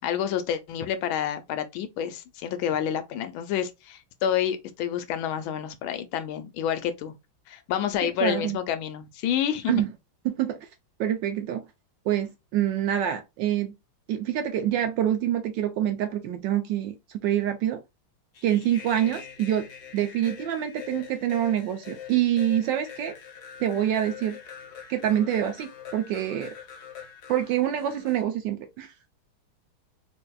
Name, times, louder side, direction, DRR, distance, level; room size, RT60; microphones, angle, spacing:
voice 1, 0.0-7.1 7.5-9.8, left 9 dB, 80° left, 1.4 m, -29 dB
voice 2, 8.0-8.6 9.7-9.9 10.2-10.6 11.0-11.6 12.1-13.7 14.1-17.8 18.4-19.7 19.9-23.2 23.6-24.4 24.9-26.5 27.3-29.2, right 11 dB, 75° right, 1.1 m, -26 dB
sound 1, 18.3-28.2, left 8 dB, 60° left, 1.2 m, -44 dB
4.0 x 2.7 x 2.2 m
omnidirectional pair, 2.3 m